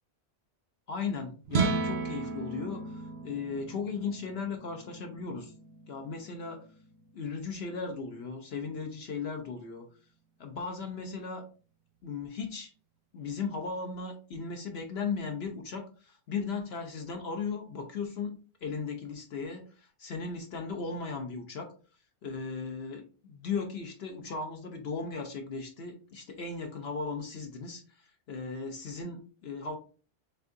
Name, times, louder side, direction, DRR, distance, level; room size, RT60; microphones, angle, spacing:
voice 1, 0.9-5.5 5.9-6.6 7.1-9.8 10.4-11.4 12.0-12.7 13.1-21.7 22.2-29.8, left 5 dB, 70° left, 4 dB, 0.9 m, -37 dB
sound 1, 1.4-7.8, right 4 dB, 65° right, 0.8 m, -35 dB
6.6 x 2.6 x 2.5 m, 0.38 s
omnidirectional pair, 1.2 m